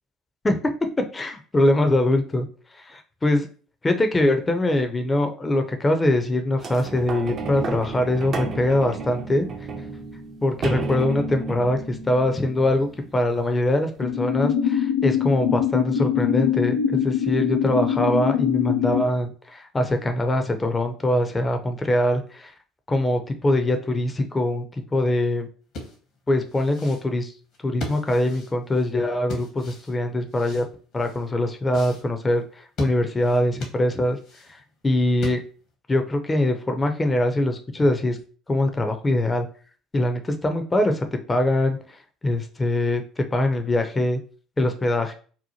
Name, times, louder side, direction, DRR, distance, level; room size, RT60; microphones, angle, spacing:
voice 1, 1.0-2.5 2.8-3.5 3.8-9.5 10.4-12.9 13.1-22.5 22.9-25.5 26.3-27.3 27.6-30.6 30.9-34.2 34.8-35.4 35.9-38.2 38.5-39.5 39.9-41.8 42.2-44.2 44.6-45.1, left 1 dB, 20° left, 6 dB, 0.5 m, -23 dB
sound 1, 6.6-13.4 14.0-14.1, right 3 dB, 45° right, 0.5 m, -32 dB
sound 2, 14.0-19.0, left 9 dB, 90° left, 0.4 m, -23 dB
sound 3, 25.6-35.7, left 2 dB, 60° left, 0.9 m, -39 dB
2.8 x 2.1 x 2.7 m, 0.40 s
hypercardioid pair, 60°, 0 cm